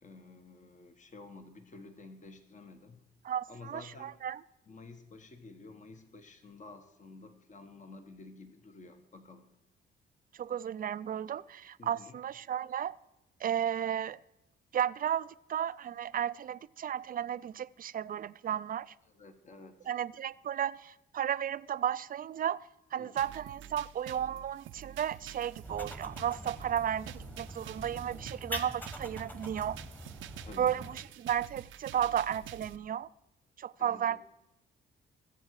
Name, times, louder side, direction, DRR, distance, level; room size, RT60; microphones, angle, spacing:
voice 1, 0.0-3.0 3.5-4.1 4.7-9.5 11.8-12.2 19.1-19.9 23.0-23.1 30.4-30.7 33.8-34.2, left 3 dB, 40° left, 1.5 m, -51 dB
voice 2, 3.2-4.4 10.3-13.0 13.4-14.2 14.7-18.9 19.9-22.6 22.9-29.8 30.6-33.1 33.6-34.2, right 9 dB, 45° right, 0.5 m, -34 dB
sound 1, 23.2-32.8, right 10 dB, 80° right, 0.7 m, -48 dB
sound 2, 25.6-31.0, equal, 10° left, 1.5 m, -44 dB
21.0 x 7.7 x 4.8 m
cardioid pair, 90°, 20 cm